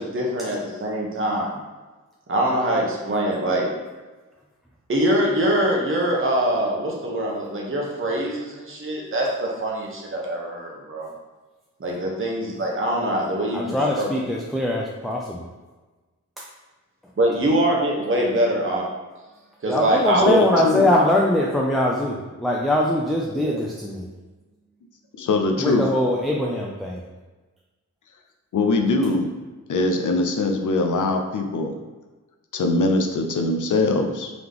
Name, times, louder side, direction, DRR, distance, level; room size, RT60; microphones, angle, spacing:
voice 1, 0.0-1.5 2.3-3.7 4.9-11.1 11.8-14.1 17.2-18.9 19.6-20.2 20.5-20.6 20.9-21.0 23.3-23.5, right 1 dB, 40° right, -2 dB, 0.9 m, -23 dB
voice 2, 13.5-15.5 16.4-16.5 19.7-24.1 25.6-27.0, left 1 dB, ahead, -2 dB, 0.3 m, -22 dB
voice 3, 20.3-20.8 25.2-25.8 28.5-29.3 29.7-31.7 32.5-34.3, left 2 dB, 70° left, 3 dB, 0.6 m, -22 dB
3.9 x 3.0 x 3.4 m, 1.2 s
wide cardioid pair, 110°, 31 cm